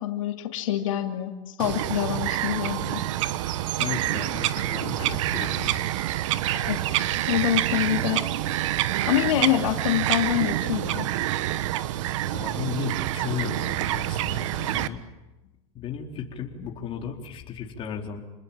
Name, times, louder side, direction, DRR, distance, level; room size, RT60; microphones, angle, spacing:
voice 1, 0.0-3.0 6.5-6.8 7.3-8.3 9.1-11.1, left 12 dB, 80° left, 3 dB, 2.8 m, -26 dB
Bird vocalization bird call bird song, 1.6-14.9, right 14 dB, 70° right, 1.3 m, -27 dB
voice 2, 3.8-5.8 12.3-15.1 15.7-18.2, left 7 dB, 35° left, 1 dB, 4.3 m, -35 dB
28.0 x 20.5 x 9.1 m, 1.0 s
supercardioid pair, 130°, 16 cm